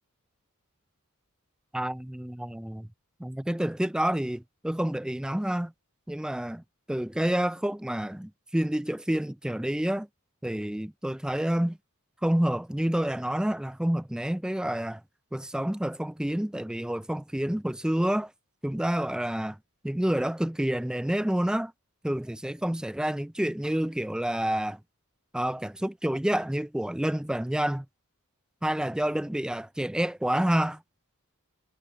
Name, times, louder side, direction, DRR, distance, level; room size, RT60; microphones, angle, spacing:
voice 1, 1.7-2.9 3.2-5.7 6.1-6.6 6.9-10.1 10.4-11.8 12.2-15.0 15.3-18.3 18.6-19.6 19.8-21.7 22.0-24.8 25.3-27.9 28.6-30.8, right 1 dB, 5° right, 0.3 m, -28 dB
head